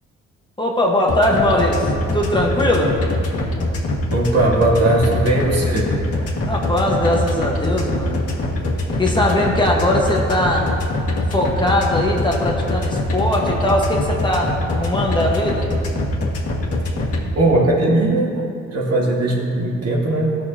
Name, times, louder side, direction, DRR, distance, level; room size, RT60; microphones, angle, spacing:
voice 1, 0.6-3.0 6.4-8.3 9.0-10.7 11.3-15.7, left 1 dB, 15° left, -2 dB, 1.3 m, -20 dB
sound 1, 1.1-17.2, left 2 dB, 50° left, 1.8 m, -22 dB
voice 2, 4.1-5.9 17.4-18.3 18.7-20.4, right 2 dB, 55° right, -3 dB, 1.9 m, -18 dB
15.5 x 6.3 x 2.9 m, 2.5 s
cardioid pair, 90°, 30 cm